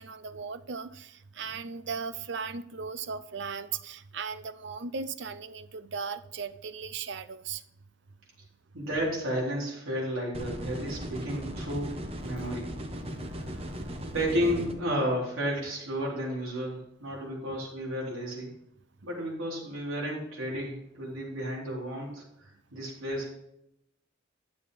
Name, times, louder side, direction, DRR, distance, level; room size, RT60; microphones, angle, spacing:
voice 1, 0.0-7.6, right 5 dB, 55° right, 13 dB, 0.6 m, -37 dB
voice 2, 8.7-11.9 12.2-12.8 13.4-13.5 14.1-18.5 19.0-23.3, equal, 90° right, -4 dB, 4.1 m, -32 dB
sound 1, 10.3-14.7, equal, 30° right, 1.0 m, -37 dB
11.5 x 7.2 x 4.2 m, 0.78 s
head